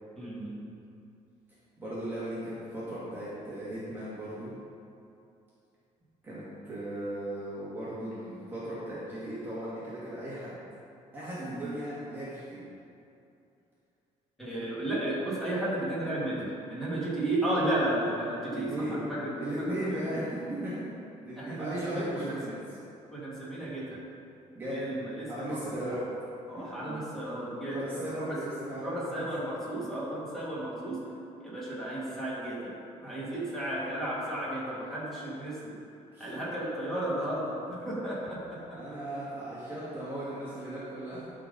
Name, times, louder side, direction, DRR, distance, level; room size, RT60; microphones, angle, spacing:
voice 1, 0.2-0.7 11.4-11.8 14.4-20.1 21.4-22.4 23.1-24.0 24.6-26.0 26.5-28.4 28.7-31.1 31.4-32.7 33.0-35.8 36.2-38.8, right 1 dB, ahead, -8 dB, 1.9 m, -34 dB
voice 2, 1.8-4.5 6.2-10.5 11.1-12.6 18.5-19.0 19.4-22.6 24.5-24.8 25.3-26.0 26.5-27.0 27.7-29.2 33.0-33.1 36.1-36.4 37.7-37.8 38.7-41.3, right 1 dB, 15° right, -10 dB, 1.5 m, -37 dB
11.5 x 3.9 x 5.3 m, 2.6 s
cardioid pair, 170°, 13 cm